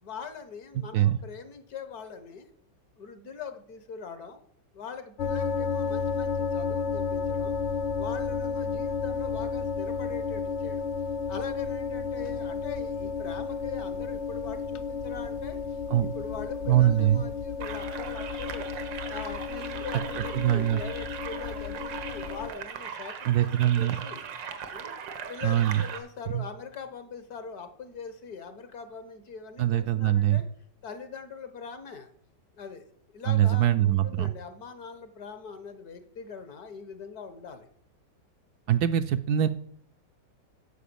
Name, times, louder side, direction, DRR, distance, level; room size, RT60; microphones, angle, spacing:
voice 1, 0.0-2.5 3.0-4.4 4.7-7.6 8.0-10.9 11.3-15.6 16.0-18.7 19.1-24.5 24.7-24.9 25.3-30.5 30.8-32.1 32.5-32.9 33.1-37.7, left 6 dB, 60° left, 10 dB, 1.6 m, -42 dB
sound 1, 5.2-22.5, left 5 dB, 75° left, 0.6 m, -32 dB
voice 2, 16.7-17.2 20.3-20.8 23.3-23.9 25.4-25.8 26.3-26.4 29.6-30.4 33.3-34.3 38.7-39.5, right 12 dB, 70° right, 10 dB, 1.0 m, -23 dB
sound 2, 17.6-26.0, right 7 dB, 85° right, 1.8 m, -39 dB
10.0 x 7.0 x 6.9 m, 0.67 s
omnidirectional pair, 1.9 m